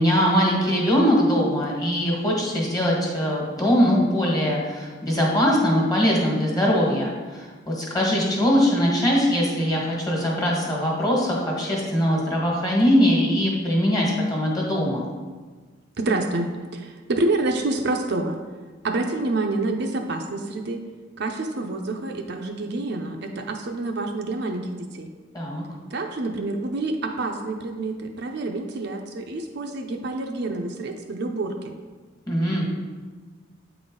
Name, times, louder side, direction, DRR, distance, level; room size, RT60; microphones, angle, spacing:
voice 1, 0.0-15.0 25.3-25.6 32.3-32.6, equal, 20° left, -3 dB, 1.4 m, -21 dB
voice 2, 16.0-18.4 18.8-20.8 21.2-25.1 25.9-31.7, right 2 dB, 60° right, 3 dB, 0.6 m, -27 dB
8.6 x 3.9 x 3.7 m, 1.4 s
head